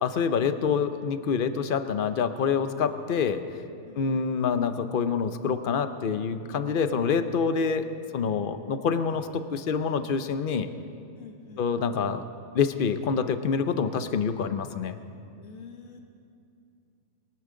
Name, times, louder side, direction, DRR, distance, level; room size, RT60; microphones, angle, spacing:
voice 1, 0.0-3.4 4.0-7.8 8.1-10.7 11.6-12.2 12.5-15.0, left 6 dB, 50° left, 10 dB, 0.7 m, -26 dB
voice 2, 3.8-4.3 11.2-11.7 15.4-16.0, left 5 dB, 75° left, 3 dB, 1.6 m, -47 dB
22.5 x 13.5 x 3.8 m, 2.5 s
omnidirectional pair, 1.4 m